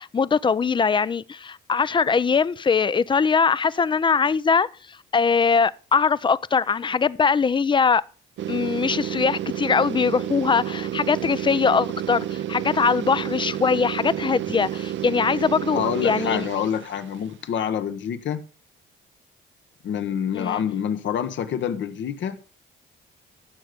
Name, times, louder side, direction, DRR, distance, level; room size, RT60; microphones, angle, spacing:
voice 1, 0.0-8.0 8.5-16.5 20.3-20.6, left 5 dB, 25° left, 0.5 m, -22 dB
sound 1, 8.4-17.1, right 12 dB, 70° right, 0.7 m, -30 dB
voice 2, 15.7-18.4 19.8-22.4, left 8 dB, 70° left, 1.3 m, -27 dB
13.5 x 6.8 x 5.1 m
cardioid pair, 90°, 20 cm